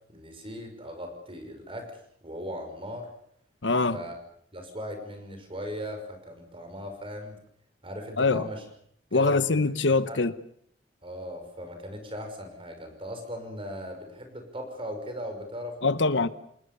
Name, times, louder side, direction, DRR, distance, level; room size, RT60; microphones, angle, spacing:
voice 1, 0.1-3.1 3.9-4.2 4.5-7.4 7.8-8.6 9.1-9.7 10.1-10.2 11.0-16.1, equal, 30° right, 5.9 m, -38 dB
voice 2, 3.6-4.0 8.2-8.4 9.1-10.3 15.8-16.3, left 3 dB, 75° left, 1.1 m, -23 dB
28.0 x 20.0 x 7.0 m
head